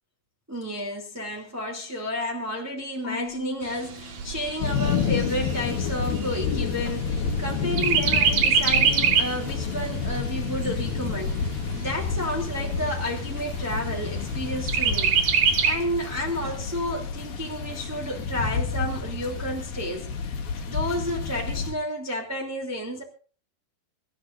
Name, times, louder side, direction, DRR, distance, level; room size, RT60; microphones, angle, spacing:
voice 1, 0.5-11.4 11.7-15.1 15.6-20.4 20.7-23.0, equal, 5° right, -1 dB, 2.2 m, -31 dB
Marimba xylophone / Wood, 3.0-5.2, left 5 dB, 35° left, 3.1 m, -41 dB
Chirp tweet, 3.6-7.4 7.8-9.4 9.9-10.0 10.3-11.3 11.9-12.0 12.3-12.4 12.9-13.4 14.7-15.7, right 7 dB, 55° right, 2.4 m, -24 dB
sound 1, 4.6-21.7, left 5 dB, 60° left, 3.4 m, -29 dB
25.5 x 13.5 x 2.6 m, 0.39 s
omnidirectional pair, 4.9 m